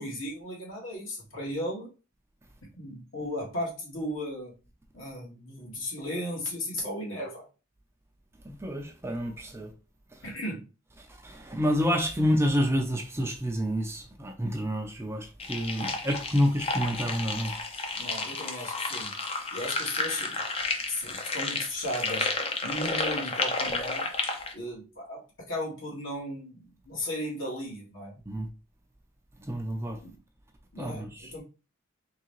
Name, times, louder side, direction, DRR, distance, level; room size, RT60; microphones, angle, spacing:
voice 1, 0.0-1.9 2.8-4.6 4.9-7.5 10.2-10.7 17.9-19.1 19.5-20.4 20.9-22.3 22.6-24.1 24.5-28.1 30.0-30.1 30.7-31.4, left 1 dB, 70° left, 1.9 m, -35 dB
voice 2, 8.4-9.7 11.2-17.5 28.3-28.5 29.4-30.0 30.8-31.3, equal, 10° right, 0.5 m, -28 dB
sound 1, 15.4-24.5, left 3 dB, 30° left, 0.6 m, -31 dB
3.7 x 3.3 x 3.1 m
head